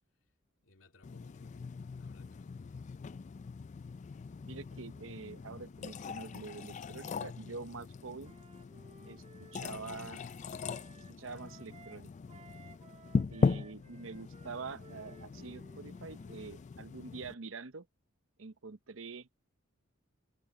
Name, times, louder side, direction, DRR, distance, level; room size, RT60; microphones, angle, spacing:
voice 1, 0.6-1.7 1.9-2.9 10.1-10.4, left 2 dB, 75° left, 2.3 m, -64 dB
sound 1, 1.0-17.3, left 4 dB, 35° left, 0.3 m, -39 dB
voice 2, 4.4-8.3 9.0-9.2 9.5-10.2 11.2-12.1 13.3-17.9 18.4-19.3, right 4 dB, 75° right, 0.9 m, -46 dB
Wind instrument woodwind instrument, 8.2-12.0 12.3-16.4, right 3 dB, 35° right, 2.7 m, -59 dB
head